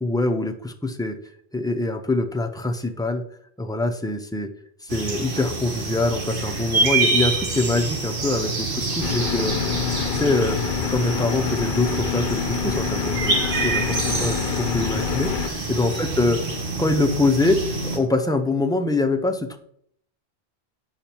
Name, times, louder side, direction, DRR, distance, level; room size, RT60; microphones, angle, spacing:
voice 1, 0.0-1.2 1.5-3.2 3.6-4.5 4.8-9.8 10.1-10.6 10.9-16.4 16.8-19.6, left 2 dB, 5° left, 4 dB, 0.4 m, -24 dB
sound 1, 4.9-18.0, right 3 dB, 55° right, 1.3 m, -27 dB
sound 2, 9.0-15.5, left 7 dB, 60° left, 0.7 m, -27 dB
7.1 x 5.8 x 4.4 m, 0.66 s
omnidirectional pair, 1.1 m